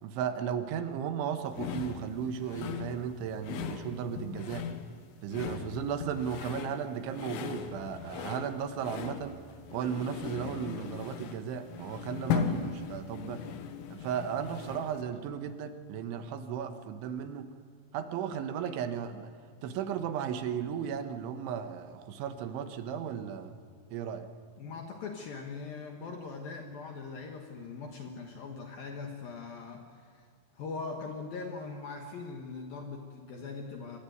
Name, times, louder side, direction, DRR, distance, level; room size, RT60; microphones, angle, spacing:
voice 1, 0.0-4.7 5.2-9.4 9.7-13.5 13.9-17.5 17.9-19.3 19.6-23.6 23.9-24.3, right 8 dB, 75° right, 8 dB, 3.4 m, -35 dB
sound 1, 1.5-15.0, left 7 dB, 85° left, 4.1 m, -38 dB
voice 2, 24.6-30.3 30.5-34.0, left 4 dB, 65° left, 3 dB, 2.6 m, -41 dB
25.5 x 21.0 x 9.4 m, 2.2 s
omnidirectional pair, 5.8 m